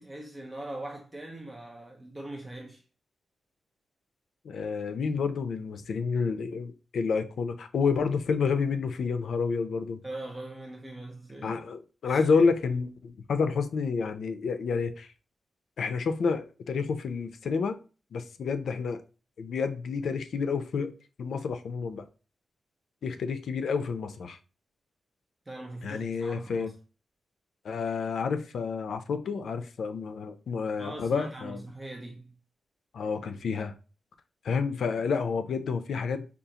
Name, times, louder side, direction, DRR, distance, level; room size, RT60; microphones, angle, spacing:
voice 1, 0.0-2.8 10.0-11.6 12.0-12.4 25.5-26.7 30.8-32.4, right 1 dB, 15° right, 0.6 m, -41 dB
voice 2, 4.4-10.0 11.4-15.1 15.8-17.8 18.1-19.0 19.4-20.9 21.2-22.1 23.0-24.4 25.8-26.7 27.6-31.6 32.9-33.7 34.4-36.3, left 5 dB, 70° left, 0.5 m, -29 dB
5.1 x 2.4 x 2.8 m
wide cardioid pair, 150°, 0 cm